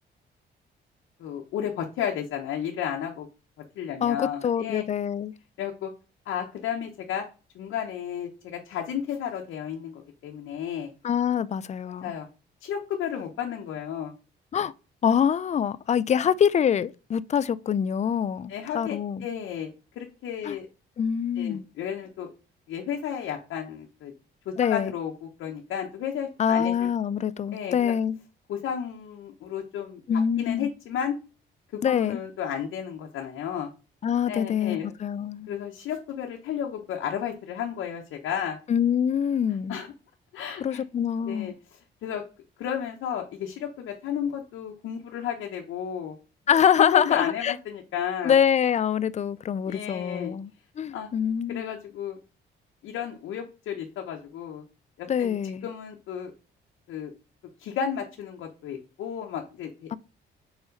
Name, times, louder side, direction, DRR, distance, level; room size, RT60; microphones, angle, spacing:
voice 1, 1.2-3.3 3.8-4.8 5.6-5.9 6.3-7.2 7.5-10.9 12.0-12.3 12.6-14.1 16.1-16.3 18.5-20.7 21.4-22.3 22.7-24.1 24.6-26.7 27.5-27.9 28.5-30.0 30.4-31.2 31.9-33.7 34.2-34.9 35.5-38.6 39.7-39.9 40.3-40.8 41.3-41.5 42.0-42.2 42.6-46.2 46.8-48.4 49.6-50.3 50.9-51.1 51.5-52.2 52.8-54.6 55.0-55.3 55.6-56.3 56.9-57.1 57.6-60.0, left 8 dB, 80° left, 0.9 m, -32 dB
voice 2, 4.0-5.3 11.0-12.1 14.5-14.7 15.0-19.3 20.4-20.6 21.0-21.7 24.6-24.9 26.4-28.2 30.1-30.7 31.8-32.2 34.0-35.5 38.7-39.7 40.6-41.5 46.5-47.5 48.2-50.5 50.8-51.6 55.1-55.7 59.9-60.0, left 8 dB, 35° left, 0.4 m, -25 dB
4.7 x 4.3 x 5.1 m
cardioid pair, 90°, 20 cm